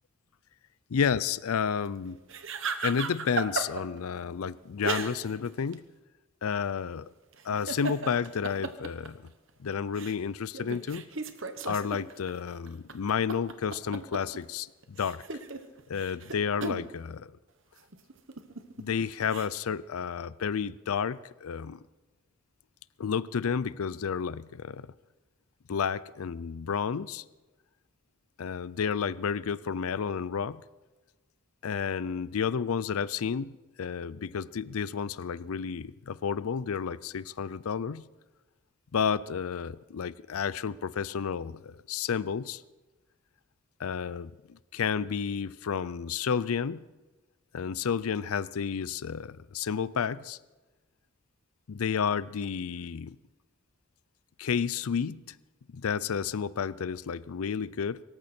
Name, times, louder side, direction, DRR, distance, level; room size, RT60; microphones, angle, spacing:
voice 1, 0.9-2.2 2.8-5.8 6.4-7.1 7.4-9.2 9.6-11.1 11.7-14.7 15.0-15.2 15.9-17.3 18.8-21.8 23.0-24.9 25.7-27.2 28.4-30.6 31.6-38.1 38.9-42.6 43.8-46.9 47.5-50.4 51.7-53.2 54.4-55.4 55.7-58.0, left 6 dB, 85° left, 18 dB, 0.5 m, -31 dB
sound 1, 2.3-4.0 4.8-5.5 5.7-5.8 7.3-9.5 10.0-10.1 10.5-14.4 14.8-16.9 17.9-19.5, right 4 dB, 65° right, 1.1 m, -35 dB
24.0 x 13.5 x 4.4 m, 1.2 s
head